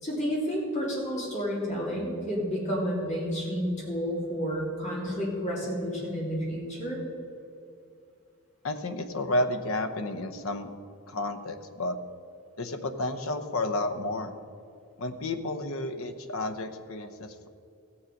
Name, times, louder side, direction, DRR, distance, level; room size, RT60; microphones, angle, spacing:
voice 1, 0.0-7.0, equal, 30° left, -4 dB, 2.7 m, -30 dB
voice 2, 8.6-10.7 11.1-12.0 12.6-14.3 15.0-17.5, left 2 dB, 65° left, 8 dB, 0.8 m, -31 dB
16.0 x 7.1 x 5.2 m, 2.5 s
head